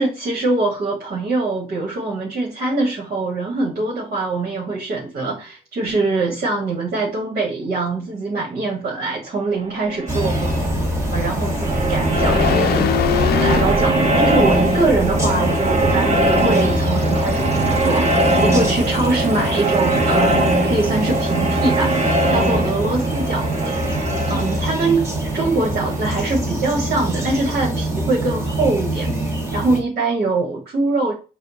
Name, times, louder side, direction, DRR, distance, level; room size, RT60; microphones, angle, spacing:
voice 1, 0.0-10.5 11.1-12.9 13.4-22.0 22.3-23.8 24.3-25.1 25.3-29.2 29.5-31.1, right 3 dB, 60° right, -2 dB, 1.4 m, -23 dB
sound 1, 9.7-26.3, right 1 dB, 40° right, 1.1 m, -21 dB
sound 2, 10.1-29.8, right 1 dB, 15° right, 1.4 m, -24 dB
sound 3, 12.2-14.2 14.6-14.8, left 9 dB, 65° left, 0.5 m, -22 dB
4.4 x 2.4 x 4.0 m, 0.33 s
cardioid pair, 100°, 17 cm